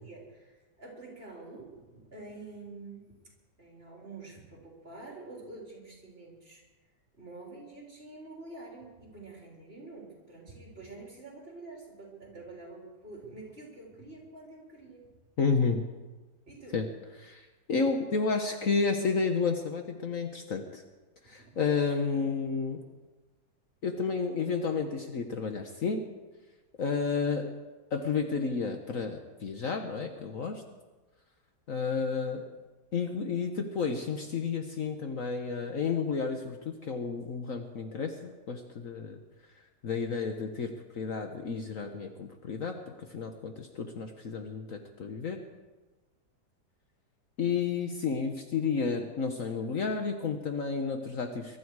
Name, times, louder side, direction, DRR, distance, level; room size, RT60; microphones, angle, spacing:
voice 1, 0.0-3.1 3.6-6.6 7.1-15.1 16.5-16.7 21.2-21.6, right 3 dB, 35° right, -2 dB, 4.1 m, -47 dB
voice 2, 15.4-15.8 16.7-16.9 17.2-20.8 21.2-22.8 23.8-26.1 26.8-27.5 27.9-30.6 31.7-32.5 32.9-39.2 39.8-42.8 43.1-45.4 47.4-51.6, left 5 dB, 55° left, 5 dB, 1.3 m, -31 dB
22.5 x 12.5 x 4.8 m, 1.2 s
omnidirectional pair, 1.8 m